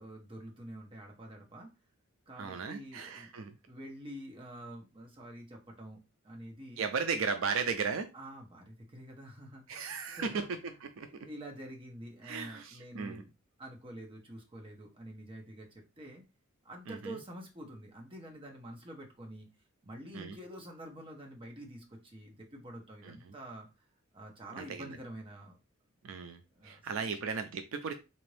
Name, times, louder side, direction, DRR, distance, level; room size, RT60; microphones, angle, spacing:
voice 1, 0.0-1.7 2.3-3.3 3.7-6.8 8.1-10.7 11.0-13.3 13.6-16.2 16.6-19.5 19.8-23.7 24.1-25.6 26.5-27.1, right 1 dB, 25° right, 1 dB, 1.0 m, -47 dB
voice 2, 2.4-3.5 6.8-8.1 9.7-11.3 12.2-13.2 16.9-17.2 20.1-20.4 23.0-23.3 24.5-25.0 26.0-27.9, right 5 dB, 70° right, 8 dB, 0.4 m, -36 dB
4.1 x 2.6 x 3.3 m, 0.28 s
head